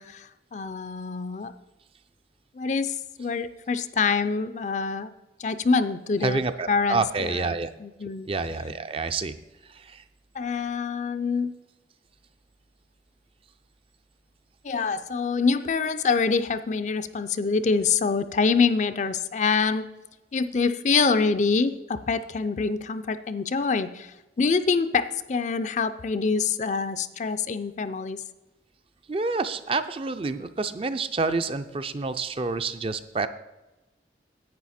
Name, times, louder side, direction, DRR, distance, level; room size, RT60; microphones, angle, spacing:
voice 1, 0.0-1.5 2.5-5.1 5.4-7.5 7.8-8.3 10.3-11.5 14.6-19.9 20.3-28.2, left 5 dB, 40° left, 12 dB, 0.4 m, -25 dB
voice 2, 6.2-7.7 8.3-9.3 9.9-10.0 29.1-33.3, right 3 dB, 30° right, 10 dB, 0.4 m, -28 dB
10.5 x 8.5 x 4.2 m, 1.0 s
head